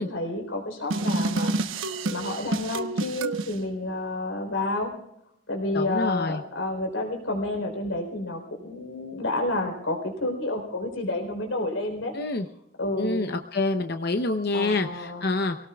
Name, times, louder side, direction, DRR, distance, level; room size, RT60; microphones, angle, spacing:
voice 1, 0.0-1.5 1.8-4.9 5.5-12.1 12.8-13.3 14.5-15.4, left 2 dB, 80° left, 3 dB, 4.0 m, -30 dB
sound 1, 0.9-3.5, right 2 dB, 80° right, 1.0 m, -28 dB
voice 2, 5.7-6.4 12.1-12.5 13.0-15.6, left 2 dB, 50° left, 6 dB, 0.8 m, -27 dB
27.5 x 18.0 x 2.4 m, 0.79 s
head